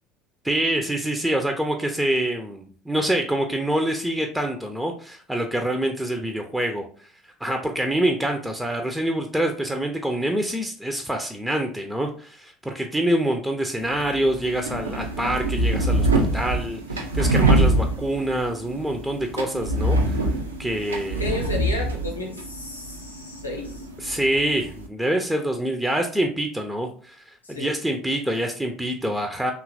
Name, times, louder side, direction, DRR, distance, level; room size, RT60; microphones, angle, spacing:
voice 1, 0.4-7.1 7.4-16.1 16.3-20.2 20.6-21.4 24.0-29.5, right 1 dB, 5° right, 4 dB, 0.4 m, -26 dB
sound 1, 13.8-24.9, right 1 dB, 85° right, 0.4 m, -25 dB
voice 2, 21.2-23.9 27.4-27.7, left 2 dB, 85° left, 0 dB, 0.6 m, -32 dB
2.7 x 2.3 x 2.5 m, 0.43 s
figure-of-eight pair, 65°, 0 cm